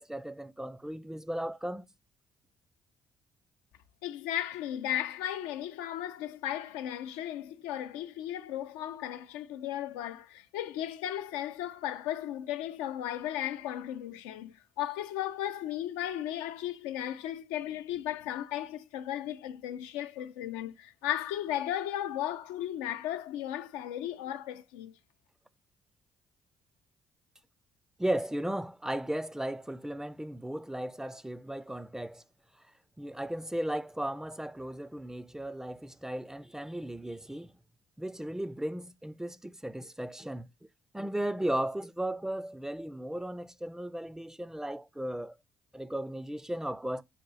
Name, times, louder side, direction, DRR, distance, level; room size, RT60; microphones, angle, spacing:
voice 1, 0.0-1.9 28.0-32.2 33.0-37.5 38.0-40.5 40.9-45.4 45.7-47.0, right 1 dB, 5° right, 0.4 m, -36 dB
voice 2, 4.0-24.9, left 12 dB, 80° left, 0.4 m, -35 dB
5.7 x 2.4 x 3.9 m
hypercardioid pair, 50°, 7 cm